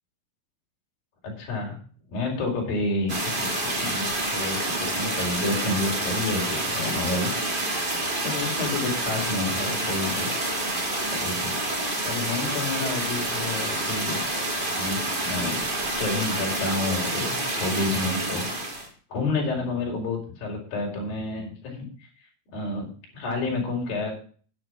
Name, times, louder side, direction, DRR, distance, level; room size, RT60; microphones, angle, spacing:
voice 1, 1.2-1.8 2.1-7.4 8.2-10.8 11.1-11.6 12.0-14.2 14.8-15.6 16.0-18.5 19.1-21.8 22.5-22.9 23.1-24.1, left 3 dB, 65° left, 0 dB, 5.6 m, -29 dB
sound 1, 3.1-18.9, right 2 dB, 15° right, 2.7 m, -28 dB
10.0 x 9.0 x 6.1 m, 0.42 s
omnidirectional pair, 4.5 m